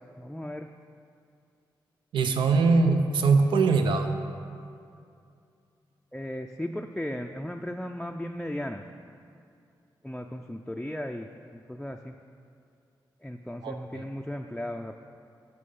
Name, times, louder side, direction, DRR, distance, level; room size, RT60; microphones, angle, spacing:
voice 1, 0.2-0.7 6.1-8.8 10.0-12.2 13.2-15.0, left 1 dB, 5° left, 2 dB, 0.4 m, -36 dB
voice 2, 2.1-4.1 13.6-14.0, right 4 dB, 90° right, 6 dB, 0.6 m, -22 dB
9.9 x 5.7 x 5.4 m, 2.5 s
cardioid pair, 75°, 8 cm